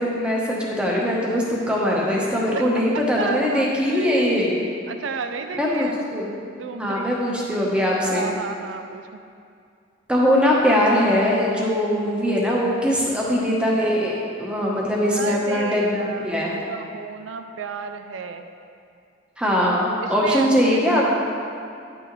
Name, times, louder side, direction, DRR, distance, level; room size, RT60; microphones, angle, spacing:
voice 1, 0.0-4.5 5.6-6.4 6.7-8.3 10.1-16.6 19.4-21.0, equal, 5° right, -4 dB, 1.0 m, -21 dB
voice 2, 3.2-4.3 4.9-6.0 6.6-7.1 8.0-9.2 11.8-11.9 13.0-13.2 15.1-18.5 19.7-19.8 20.0-21.0, right 5 dB, 75° right, 7 dB, 0.4 m, -32 dB
9.8 x 6.1 x 3.1 m, 2.4 s
head